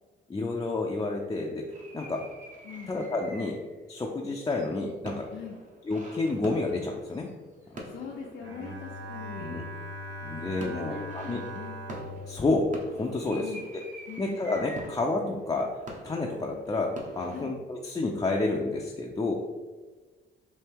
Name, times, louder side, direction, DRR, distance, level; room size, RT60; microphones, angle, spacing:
voice 1, 0.3-1.6 1.9-2.2 2.9-3.6 3.9-5.3 5.8-7.3 7.7-7.8 9.4-9.6 10.2-11.4 12.3-13.5 14.2-15.7 16.0-19.3, left 2 dB, 20° left, -1 dB, 0.4 m, -30 dB
sound 1, 1.7-3.8 4.2-9.2 9.8-10.2 10.6-17.4, right 1 dB, 40° right, 0.9 m, -45 dB
voice 2, 7.6-9.6 10.6-11.8 13.4-13.6 14.1-14.3 17.3-17.5, left 7 dB, 70° left, -2 dB, 0.5 m, -42 dB
Bowed string instrument, 8.4-13.7, equal, 85° right, 0.7 m, -41 dB
4.3 x 2.7 x 3.4 m, 1.3 s
cardioid pair, 90°, 20 cm